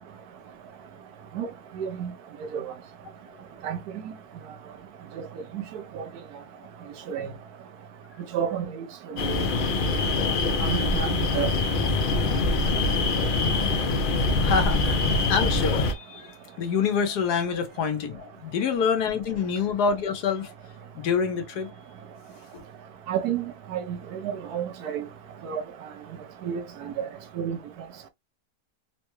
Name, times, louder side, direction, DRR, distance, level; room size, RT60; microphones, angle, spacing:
voice 1, 1.8-2.1 2.5-2.7 3.6-3.8 5.2-5.3 5.9-6.0 7.1-7.3 8.3-9.4 10.6-11.5 23.1-23.4 23.7-25.0 25.4-25.6 26.4-27.1 27.4-27.6, right 9 dB, 80° right, 1.2 m, -30 dB
sound 1, 9.2-15.9, left 3 dB, 70° left, 0.5 m, -24 dB
voice 2, 14.4-20.5 20.9-21.7 22.5-22.6, left 6 dB, 90° left, 1.4 m, -27 dB
3.8 x 2.2 x 3.0 m
omnidirectional pair, 1.7 m